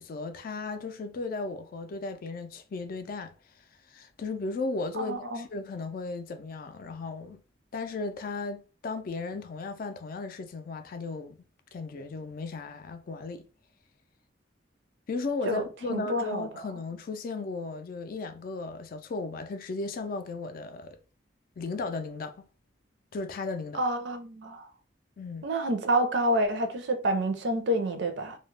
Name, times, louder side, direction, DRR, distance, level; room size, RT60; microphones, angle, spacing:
voice 1, 0.0-3.3 3.9-7.4 7.7-11.4 11.7-13.4 15.1-21.0 21.6-22.5 23.1-23.8 25.2-25.5, left 3 dB, 50° left, 0.3 m, -35 dB
voice 2, 5.0-5.4 15.5-15.6 15.9-16.5 23.7-24.7 25.4-28.4, right 1 dB, 70° right, 0.5 m, -28 dB
2.3 x 2.0 x 3.0 m
head